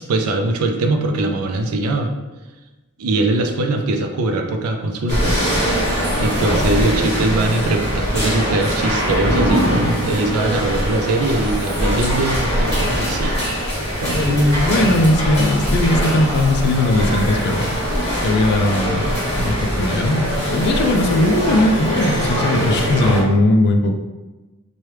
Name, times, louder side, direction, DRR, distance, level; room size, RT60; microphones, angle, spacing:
voice 1, 0.0-2.1 3.0-5.4 6.1-13.4 14.0-14.1 14.5-14.6, right 2 dB, 80° right, 4 dB, 0.4 m, -21 dB
sound 1, 5.1-23.2, equal, 30° left, 1.3 m, -21 dB
voice 2, 14.1-17.7 18.2-24.0, left 1 dB, 50° left, 4 dB, 0.3 m, -18 dB
3.0 x 2.2 x 3.2 m, 1.1 s
head